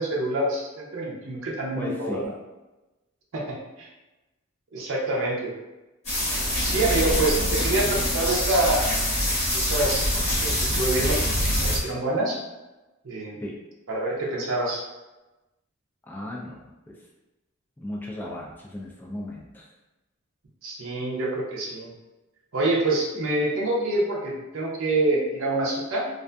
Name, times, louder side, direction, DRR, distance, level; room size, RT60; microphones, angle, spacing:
voice 1, 0.0-2.2 3.3-3.9 4.7-5.5 6.6-9.1 9.5-12.4 13.0-13.4 13.9-14.8 20.6-21.9 22.5-26.1, right 2 dB, 65° right, -4 dB, 0.6 m, -26 dB
voice 2, 1.8-2.3 13.4-13.5 16.1-17.0 17.8-19.7, left 1 dB, 10° left, -3 dB, 0.3 m, -36 dB
sound 1, 6.0-11.8, equal, 30° left, 1.1 m, -25 dB
2.5 x 2.4 x 2.2 m, 1.1 s
head